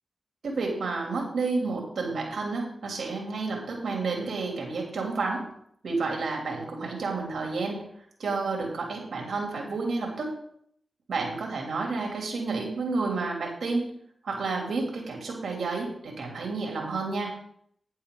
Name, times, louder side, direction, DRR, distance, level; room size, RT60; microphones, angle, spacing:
voice 1, 0.4-5.5 5.8-7.8 8.2-10.3 11.1-13.9 14.2-17.3, right 3 dB, 80° right, 0 dB, 3.0 m, -30 dB
11.0 x 10.0 x 3.9 m, 0.69 s
cardioid pair, 50°, 0 cm